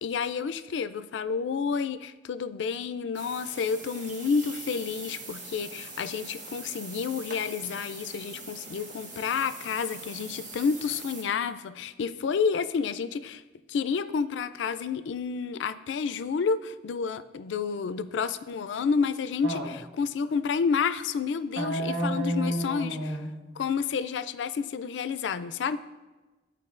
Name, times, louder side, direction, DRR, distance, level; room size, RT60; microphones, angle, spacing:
voice 1, 0.0-13.4 13.7-23.0 23.6-25.8, left 5 dB, 85° left, 13 dB, 0.4 m, -30 dB
sound 1, 3.1-11.2, right 3 dB, 45° right, 1.0 m, -42 dB
voice 2, 19.4-19.7 21.6-23.3, right 1 dB, 90° right, 0 dB, 1.3 m, -30 dB
12.5 x 4.4 x 2.4 m, 1.2 s
head